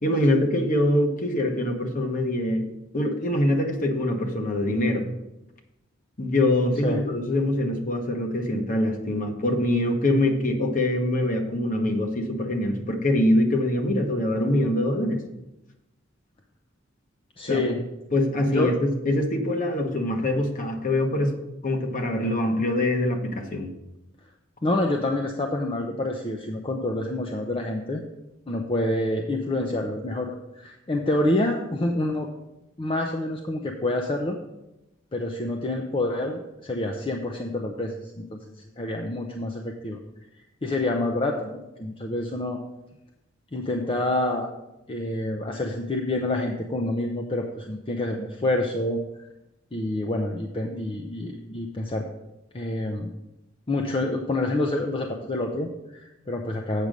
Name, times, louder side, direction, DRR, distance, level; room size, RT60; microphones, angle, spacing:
voice 1, 0.0-2.6 2.9-5.0 6.2-15.2 17.5-17.6 18.1-21.3 21.6-23.7, left 1 dB, 45° left, 3 dB, 1.2 m, -24 dB
voice 2, 17.4-17.8 18.5-18.8 24.6-28.0 28.5-32.3 32.8-34.4 35.1-38.4 38.8-40.0 40.6-42.6 43.5-44.5 44.9-49.0 49.7-52.1 52.5-53.1 53.7-56.9, left 1 dB, 25° left, 2 dB, 0.6 m, -27 dB
8.2 x 6.1 x 5.2 m, 0.92 s
head